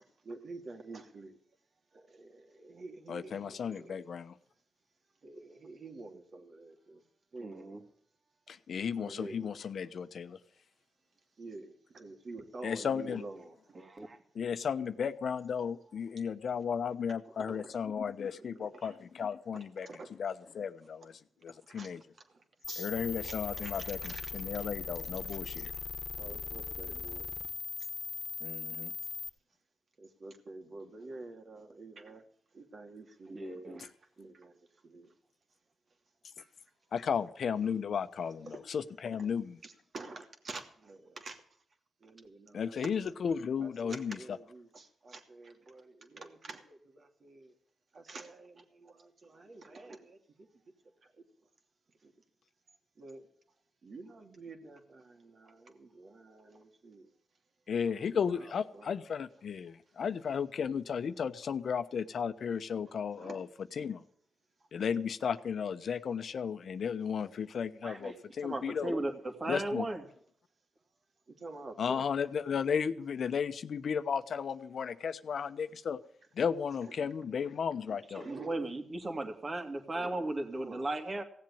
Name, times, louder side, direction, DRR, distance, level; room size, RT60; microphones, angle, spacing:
voice 1, 0.2-1.4 1.9-4.0 5.2-7.0 7.3-7.7 8.9-9.6 11.4-13.6 14.8-14.9 17.2-17.8 18.3-19.0 19.5-20.1 21.7-21.9 22.7-22.9 23.2-24.7 25.3-25.4 26.2-27.3 30.0-32.2 32.5-33.4 33.8-34.5 34.8-35.1 36.4-36.5 37.6-37.7 38.4-38.6 39.2-39.3 39.6-41.4 42.0-43.2 43.6-47.5 47.9-50.2 52.0-52.1 53.0-53.3 53.8-57.1 57.8-59.0 63.1-63.4 71.4-72.0 76.8-76.9 78.1-78.6 80.6-80.9, right 3 dB, 55° right, 5 dB, 2.7 m, -48 dB
voice 2, 3.1-4.3 8.5-10.4 12.6-13.2 14.3-19.9 20.2-21.1 21.4-22.0 22.8-25.7 28.4-28.9 36.9-39.6 42.5-44.2 57.7-63.5 63.8-64.0 64.7-68.9 69.5-69.8 71.8-76.0 76.3-78.2, left 7 dB, 65° left, 11 dB, 0.9 m, -34 dB
voice 3, 7.4-7.8 13.7-14.2 33.3-33.8 67.8-68.2 68.4-70.0 78.1-81.2, right 2 dB, 40° right, 5 dB, 2.6 m, -36 dB
sound 1, 22.6-29.3, left 5 dB, 50° left, 1.4 m, -39 dB
17.0 x 7.6 x 8.6 m, 0.65 s
supercardioid pair, 55°, 0 cm